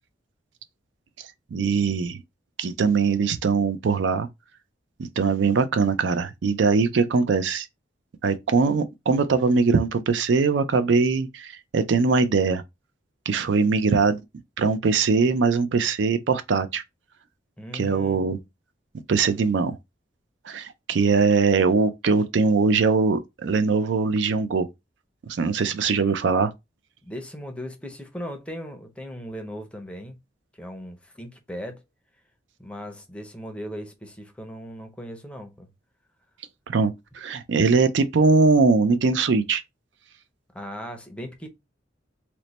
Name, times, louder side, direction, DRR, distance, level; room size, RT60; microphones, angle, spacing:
voice 1, 1.5-2.2 2.6-4.3 5.0-7.7 8.2-12.6 13.3-14.2 14.6-16.8 17.7-18.4 19.1-19.8 20.5-24.7 25.2-26.5 36.7-39.6, right 4 dB, 70° right, 0.4 m, -21 dB
voice 2, 17.6-18.2 27.0-30.2 30.6-31.8 32.6-35.7 40.5-41.5, equal, 5° left, 0.5 m, -38 dB
3.0 x 2.1 x 4.0 m
head